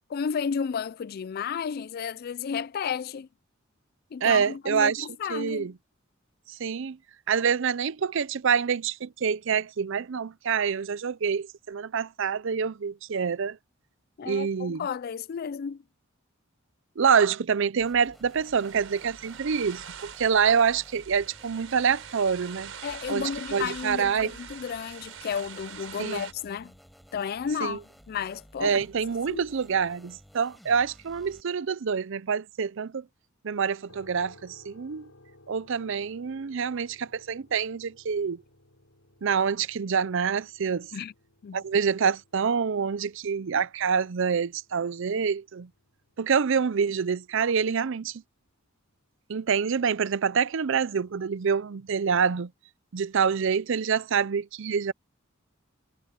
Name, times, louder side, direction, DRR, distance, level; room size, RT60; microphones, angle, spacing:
voice 1, 0.1-3.3 4.1-5.7 14.2-15.8 22.8-26.7 27.1-27.8 28.1-28.8 29.3-29.4 40.9-41.1 41.4-41.6, left 7 dB, 50° left, 0.3 m, -32 dB
voice 2, 4.2-5.7 6.6-7.0 7.3-13.6 14.3-14.9 17.0-22.7 23.1-24.3 26.0-26.2 27.6-27.8 28.6-33.0 33.4-35.1 35.5-38.4 39.2-40.9 41.5-45.7 46.2-48.2 49.3-52.5 52.9-54.9, right 6 dB, 65° right, 0.5 m, -26 dB
sound 1, 17.8-31.4, equal, ahead, 5.0 m, -54 dB
sound 2, 18.2-26.3, right 8 dB, 85° right, 5.0 m, -44 dB
sound 3, 33.9-47.9, left 1 dB, 85° left, 7.9 m, -59 dB
head